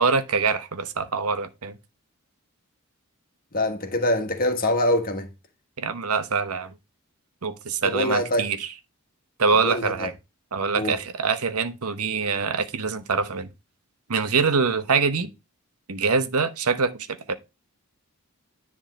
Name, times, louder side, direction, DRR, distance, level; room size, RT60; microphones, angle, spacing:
voice 1, 0.0-1.8 5.8-6.7 7.4-8.7 9.4-10.1 10.5-13.5 14.1-15.3 15.9-17.3, right 5 dB, 80° right, 1.0 m, -24 dB
voice 2, 3.5-5.3 7.8-8.5 9.5-10.1 10.8-11.0, left 1 dB, 40° left, 1.6 m, -24 dB
10.0 x 3.6 x 5.1 m
head